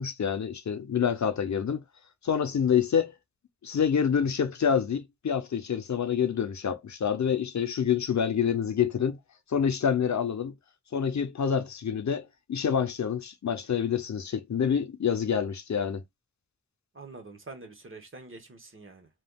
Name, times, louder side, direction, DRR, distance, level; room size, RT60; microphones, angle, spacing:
voice 1, 0.0-1.8 2.2-3.1 3.6-9.2 9.5-10.5 10.9-16.0, left 7 dB, 70° left, 0.6 m, -27 dB
voice 2, 16.9-19.1, right 3 dB, 45° right, 1.1 m, -46 dB
3.4 x 2.3 x 2.3 m
cardioid pair, 45°, 29 cm